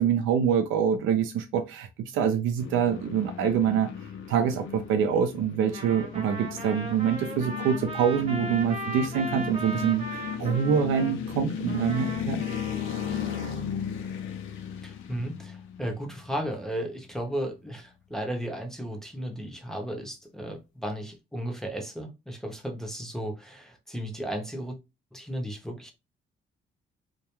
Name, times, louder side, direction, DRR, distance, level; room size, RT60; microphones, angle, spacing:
voice 1, 0.0-1.9 2.1-3.9 4.3-10.0 10.4-12.4, right 8 dB, 85° right, 0.4 m, -25 dB
sound 1, 2.6-16.8, left 8 dB, 85° left, 0.5 m, -36 dB
Trumpet, 5.6-11.2 11.7-13.6, right 1 dB, 30° right, 0.9 m, -38 dB
voice 2, 14.8-24.8 25.1-25.9, equal, ahead, 0.5 m, -34 dB
2.3 x 2.2 x 2.9 m
cardioid pair, 90°, 20 cm